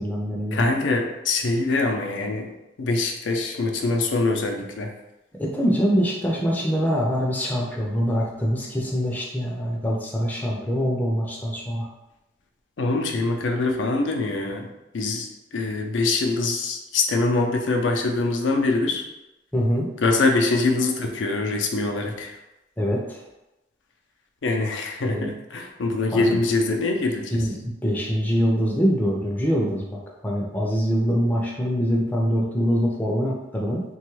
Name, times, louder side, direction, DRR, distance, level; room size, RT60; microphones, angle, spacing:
voice 1, 0.0-0.7 5.4-11.9 19.5-19.9 22.8-23.2 25.0-25.3 26.1-26.4 27.3-33.8, equal, 10° left, -3 dB, 0.4 m, -24 dB
voice 2, 0.5-2.5 2.8-4.9 12.8-14.7 14.9-15.3 15.5-19.0 20.0-22.3 24.4-27.3, left 3 dB, 90° left, 2 dB, 0.5 m, -24 dB
3.0 x 2.3 x 3.0 m, 0.96 s
head